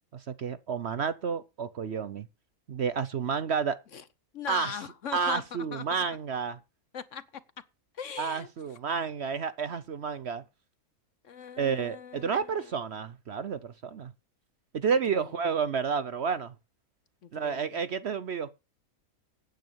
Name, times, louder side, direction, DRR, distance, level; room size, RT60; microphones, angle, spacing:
voice 1, 0.1-2.3 2.7-3.8 4.5-4.7 5.1-6.6 8.2-10.4 11.6-14.1 14.7-16.5 17.3-18.5, right 6 dB, 55° right, 0.9 m, -30 dB
voice 2, 4.3-6.0 6.9-7.4 7.9-8.5 11.2-12.7 15.1-15.4 17.2-17.8, left 7 dB, 60° left, 1.2 m, -40 dB
9.4 x 8.1 x 7.1 m
omnidirectional pair, 1.6 m